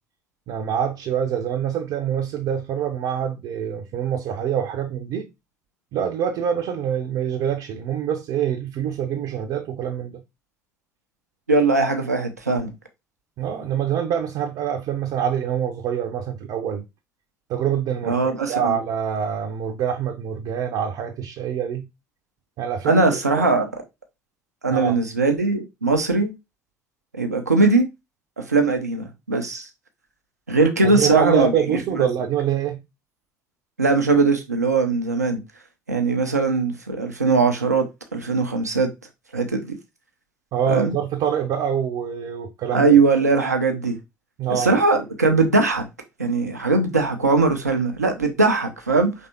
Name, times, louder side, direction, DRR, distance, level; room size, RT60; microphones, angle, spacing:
voice 1, 0.5-5.3 5.9-10.2 13.4-16.8 17.5-21.9 22.6-23.0 23.3-23.5 24.7-25.0 30.8-32.8 40.5-42.9 44.4-44.8, right 8 dB, 50° right, 0.7 m, -25 dB
voice 2, 11.5-12.7 18.1-18.8 22.8-23.7 24.6-26.3 27.1-27.9 28.4-29.7 30.5-31.6 32.0-32.1 33.8-35.4 35.9-37.9 38.1-38.9 39.3-39.7 40.7-40.9 42.7-44.0 44.5-45.9 46.2-49.1, right 3 dB, 85° right, 0.6 m, -20 dB
5.3 x 3.3 x 2.8 m
figure-of-eight pair, 60°, 8 cm